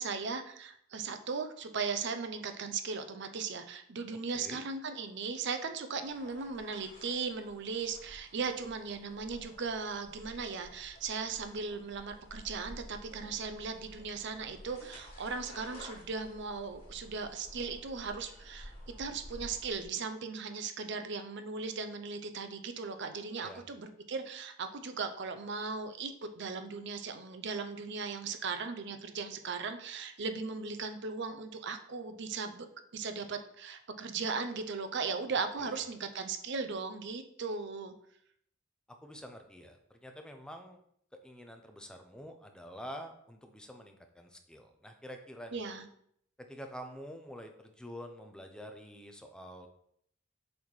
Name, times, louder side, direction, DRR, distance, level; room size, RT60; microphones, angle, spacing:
voice 1, 0.0-32.7 32.9-37.9 45.5-45.8, right 4 dB, 55° right, 8 dB, 0.6 m, -37 dB
voice 2, 4.3-4.6 23.4-23.6 35.5-35.8 39.0-40.8 41.2-45.6 46.5-49.7, equal, 5° left, 4 dB, 0.6 m, -47 dB
sound 1, 6.1-19.8, equal, 25° left, 1.9 m, -52 dB
7.0 x 4.2 x 3.2 m, 0.69 s
head